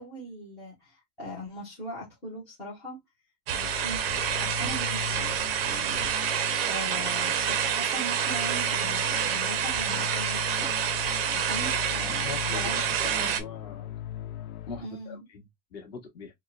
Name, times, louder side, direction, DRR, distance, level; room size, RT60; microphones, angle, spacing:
voice 1, 0.0-3.0 3.5-6.3 6.6-10.7 11.3-12.8 14.8-15.3, equal, 5° left, 0.4 m, -40 dB
sound 1, 3.5-13.4, right 9 dB, 45° right, 0.5 m, -28 dB
sound 2, 3.6-14.8, left 12 dB, 75° left, 0.6 m, -39 dB
voice 2, 12.2-13.9 14.7-16.3, left 5 dB, 40° left, 1.5 m, -41 dB
4.6 x 2.1 x 2.3 m
supercardioid pair, 170°, 44 cm